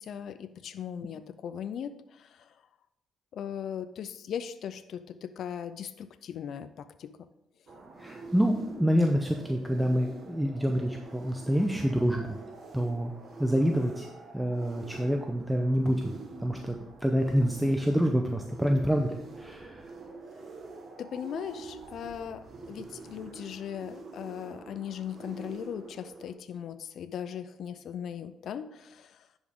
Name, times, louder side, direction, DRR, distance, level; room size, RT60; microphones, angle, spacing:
voice 1, 0.0-2.6 3.3-7.3 21.0-29.3, left 8 dB, 65° left, 12 dB, 0.4 m, -39 dB
sound 1, 7.7-26.3, right 3 dB, 50° right, 1.3 m, -46 dB
voice 2, 8.0-12.4 12.7-13.1 13.4-14.1 14.3-16.1 16.4-16.8 17.0-19.9, equal, 5° right, 3 dB, 0.7 m, -27 dB
10.5 x 5.3 x 3.6 m, 0.84 s
cardioid pair, 90°, 0 cm